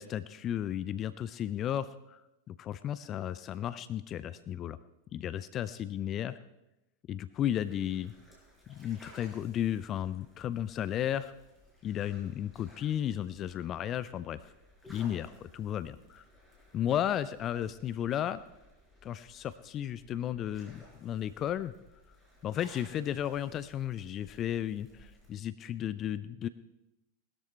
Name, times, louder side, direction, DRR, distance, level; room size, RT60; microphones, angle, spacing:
voice 1, 0.0-2.2 2.5-4.8 5.1-6.4 7.1-8.1 8.7-11.3 11.8-14.4 14.9-16.2 16.7-18.4 19.0-21.7 22.4-26.5, left 10 dB, 30° left, 15 dB, 0.5 m, -34 dB
sound 1, 7.5-25.3, left 1 dB, 5° left, 5.2 m, -59 dB
19.5 x 13.0 x 3.3 m, 0.93 s
figure-of-eight pair, 90°, 0 cm